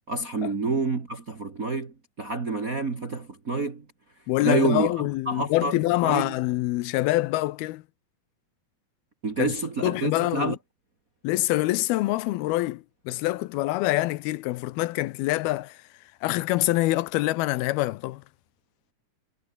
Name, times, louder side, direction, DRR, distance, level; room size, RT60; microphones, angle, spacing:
voice 1, 0.1-3.8 4.4-6.3 9.2-10.6, right 3 dB, 35° right, 1.4 m, -28 dB
voice 2, 4.3-7.8 9.4-9.5 9.8-10.6 11.2-15.8 16.2-18.2, left 18 dB, 90° left, 2.7 m, -25 dB
omnidirectional pair, 4.4 m